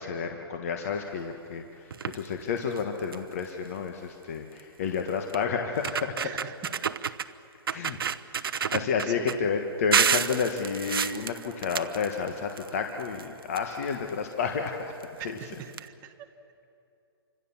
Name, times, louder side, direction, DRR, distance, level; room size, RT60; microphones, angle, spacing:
voice 1, 0.0-6.2 7.7-8.0 8.5-15.0 15.2-15.6, left 6 dB, 35° left, 4 dB, 1.4 m, -31 dB
sound 1, 1.9-2.3 2.8-2.9 3.1-3.4 4.6-4.7 5.3-5.4 5.7-7.3 7.7-9.4 9.9-12.7 13.0-14.1 15.0-15.1 15.4-15.5 15.7-15.8, right 7 dB, 60° right, 0.9 m, -29 dB
voice 2, 6.2-6.5 7.7-7.8 9.0-9.3 15.2-16.3, right 9 dB, 15° right, 4 dB, 1.0 m, -42 dB
28.5 x 25.5 x 7.3 m, 2.6 s
hypercardioid pair, 175°, 14 cm